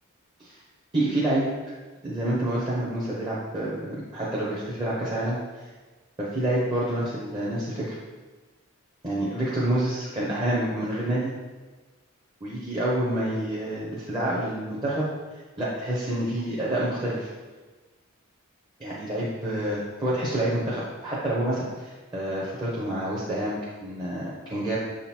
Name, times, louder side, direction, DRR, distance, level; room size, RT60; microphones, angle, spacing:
voice 1, 0.9-1.5 2.0-5.7 6.2-8.0 9.0-11.3 12.4-15.1 15.6-17.3 18.8-24.8, right 1 dB, 20° right, -7 dB, 0.9 m, -28 dB
6.5 x 3.8 x 4.4 m, 1.3 s
head